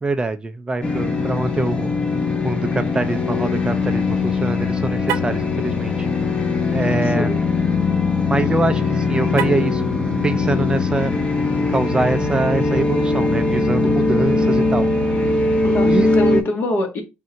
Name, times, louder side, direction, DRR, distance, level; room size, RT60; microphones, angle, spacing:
voice 1, 0.0-1.9 2.4-6.1 6.7-7.3 8.3-9.8 10.2-11.1 11.6-14.9 15.8-16.1, right 2 dB, 20° right, 0.5 m, -24 dB
sound 1, 0.8-16.4, left 3 dB, 25° left, 1.0 m, -20 dB
Car, 5.0-5.4 9.3-9.8, right 9 dB, 90° right, 0.5 m, -28 dB
voice 2, 6.9-7.4 15.6-17.0, equal, 50° left, 1.5 m, -24 dB
3.7 x 2.7 x 4.4 m
cardioid pair, 95°, 5 cm